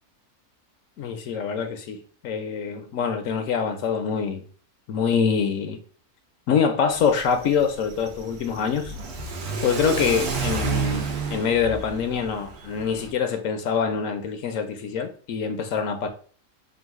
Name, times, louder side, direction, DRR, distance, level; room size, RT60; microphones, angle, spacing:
voice 1, 1.0-4.4 4.9-5.8 6.5-8.9 9.6-16.1, left 6 dB, 70° left, 0.9 m, -25 dB
Car / Accelerating revving vroom, 6.9-13.1, right 4 dB, 85° right, 1.4 m, -31 dB
3.9 x 2.3 x 4.6 m
omnidirectional pair, 1.6 m